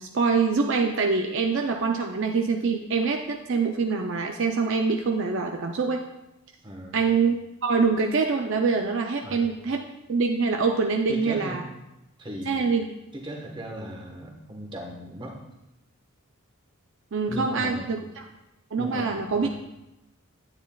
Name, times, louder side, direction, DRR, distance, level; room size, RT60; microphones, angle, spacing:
voice 1, 0.0-6.0 6.9-7.4 7.6-9.8 10.1-11.6 12.5-12.9 17.1-18.2 18.7-19.5, right 4 dB, 55° right, 2 dB, 0.5 m, -24 dB
voice 2, 6.6-7.0 9.2-9.4 11.1-11.6 12.2-12.7 13.1-15.4 17.3-17.9 18.8-19.5, equal, 20° right, 0 dB, 1.2 m, -37 dB
9.6 x 9.3 x 2.3 m, 0.93 s
head